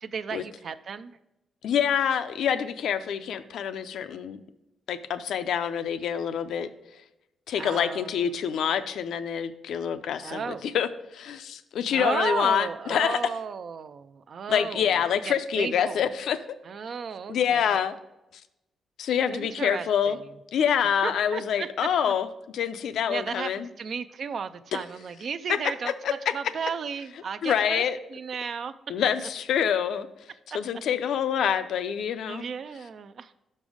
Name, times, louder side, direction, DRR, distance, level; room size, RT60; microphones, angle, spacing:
voice 1, 0.0-1.1 7.6-8.5 10.2-10.7 11.9-15.0 15.2-16.1 16.6-17.8 19.3-20.3 21.0-21.7 22.1-22.2 23.1-27.8 28.1-28.7 32.3-33.3, right 6 dB, 55° right, 13 dB, 0.3 m, -34 dB
voice 2, 1.6-4.4 4.9-6.7 7.5-13.2 14.5-16.4 17.3-17.9 19.0-20.2 20.5-22.3 22.5-23.7 24.7-24.8 26.0-26.1 27.4-28.0 28.9-30.1 30.5-32.4, left 8 dB, 80° left, 11 dB, 0.4 m, -26 dB
6.1 x 5.4 x 4.9 m, 0.91 s
cardioid pair, 120°, 0 cm